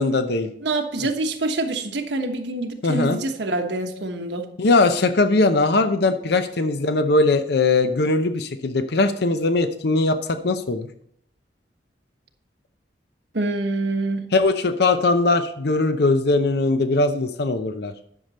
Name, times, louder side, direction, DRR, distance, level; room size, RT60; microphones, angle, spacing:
voice 1, 0.0-0.5 1.0-1.1 2.8-3.2 4.6-10.9 14.3-17.9, left 3 dB, 65° left, 9 dB, 0.7 m, -20 dB
voice 2, 0.6-4.5 13.3-14.2, right 2 dB, 70° right, 4 dB, 1.2 m, -26 dB
11.0 x 6.7 x 4.2 m, 0.72 s
head